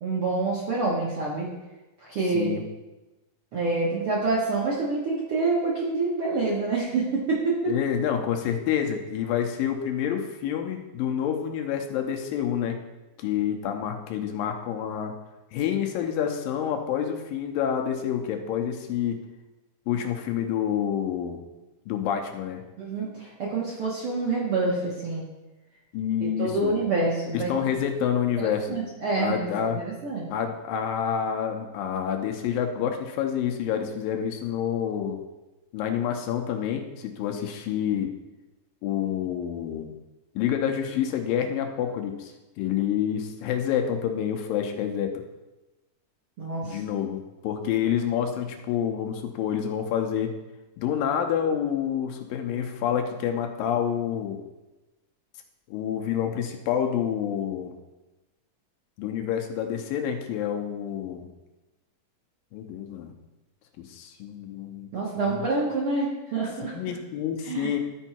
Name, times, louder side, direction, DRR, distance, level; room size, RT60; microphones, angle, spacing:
voice 1, 0.0-1.5 2.0-2.5 3.5-7.8 22.8-25.3 26.2-27.8 28.4-30.3 46.4-46.8 64.9-66.7 67.4-67.7, right 3 dB, 60° right, -5 dB, 1.5 m, -27 dB
voice 2, 7.7-12.8 13.2-15.1 15.5-19.2 19.9-21.4 21.9-22.6 25.9-26.7 27.3-28.7 29.2-29.8 30.3-35.2 35.7-38.1 38.8-39.9 40.4-45.1 46.6-50.3 50.8-54.4 55.7-57.8 59.0-61.3 62.5-63.1 63.8-65.4 66.6-67.8, left 9 dB, 85° left, 4 dB, 2.5 m, -28 dB
13.0 x 4.5 x 4.4 m, 1.1 s
omnidirectional pair, 4.1 m